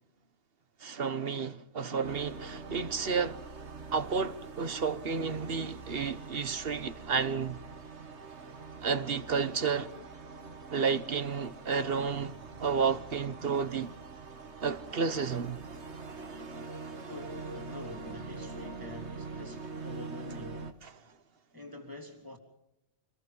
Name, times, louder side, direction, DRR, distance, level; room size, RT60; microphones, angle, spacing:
voice 1, 0.8-3.4 3.9-7.6 8.8-9.9 10.7-12.3 12.6-13.9 14.6-15.6, right 5 dB, 60° right, 1.3 m, -31 dB
sound 1, 2.0-20.7, right 4 dB, 85° right, 2.0 m, -44 dB
voice 2, 17.0-20.8 21.5-22.4, left 2 dB, 20° right, 3.1 m, -46 dB
26.5 x 21.0 x 5.5 m
omnidirectional pair, 1.1 m